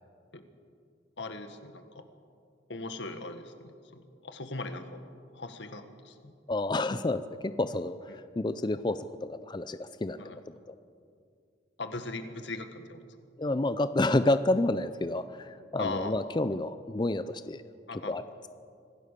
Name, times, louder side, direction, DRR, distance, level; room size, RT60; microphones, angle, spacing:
voice 1, 1.2-1.8 2.7-5.0 5.3-6.3 8.1-8.2 10.2-10.4 11.8-13.0 15.8-16.1 17.9-18.1, left 3 dB, 85° left, 8 dB, 1.7 m, -39 dB
voice 2, 6.5-10.4 10.7-10.8 13.4-17.6 17.9-18.5, left 2 dB, 25° left, 12 dB, 0.5 m, -30 dB
25.0 x 16.5 x 6.8 m, 2.3 s
head